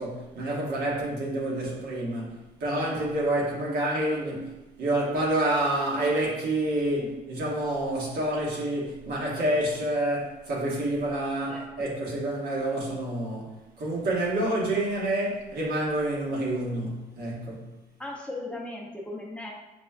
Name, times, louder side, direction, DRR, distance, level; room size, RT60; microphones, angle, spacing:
voice 1, 0.0-13.5 13.8-17.7, right 1 dB, 70° right, -4 dB, 1.3 m, -28 dB
voice 2, 11.5-11.9 18.0-19.5, left 2 dB, 5° left, -2 dB, 0.5 m, -38 dB
5.9 x 2.2 x 2.3 m, 1.1 s
cardioid pair, 110°, 17 cm